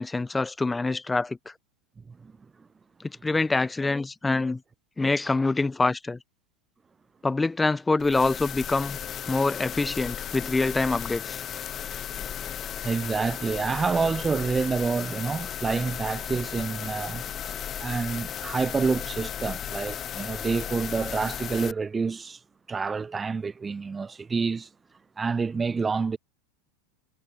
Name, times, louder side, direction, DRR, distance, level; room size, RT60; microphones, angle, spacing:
voice 1, 0.0-1.4 3.0-4.6 5.0-6.2 7.2-9.0 9.3-11.4, left 3 dB, 10° left, 0.5 m, -25 dB
sound 1, 8.0-21.7, left 9 dB, 30° left, 2.6 m, -35 dB
voice 2, 12.8-17.2 17.8-22.4 22.7-24.7 25.2-26.2, right 5 dB, 15° right, 1.3 m, -28 dB
figure-of-eight pair, 80°, 0 cm